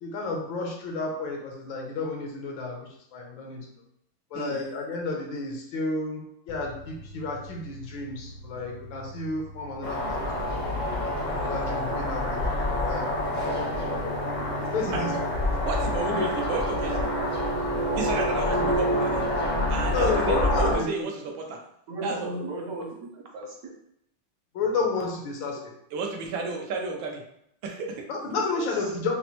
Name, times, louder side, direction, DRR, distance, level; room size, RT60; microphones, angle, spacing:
voice 1, 0.0-3.7 4.3-10.5 11.0-12.4 12.9-13.0 14.6-15.1 16.1-16.3 18.4-18.7 19.9-21.1 24.5-25.6 28.1-29.1, left 3 dB, 85° left, 0 dB, 1.6 m, -31 dB
sound 1, 6.5-20.5, equal, 70° left, 1.1 m, -45 dB
sound 2, 9.8-20.8, left 1 dB, 50° left, 0.5 m, -27 dB
voice 2, 15.6-17.1 18.0-19.3 19.7-21.6 22.0-22.3 25.9-27.2 27.6-28.1, right 3 dB, 90° right, 1 dB, 1.5 m, -32 dB
voice 3, 21.9-23.7 28.5-28.9, right 2 dB, 70° right, -1 dB, 0.9 m, -36 dB
5.4 x 2.0 x 2.9 m, 0.73 s
omnidirectional pair, 2.1 m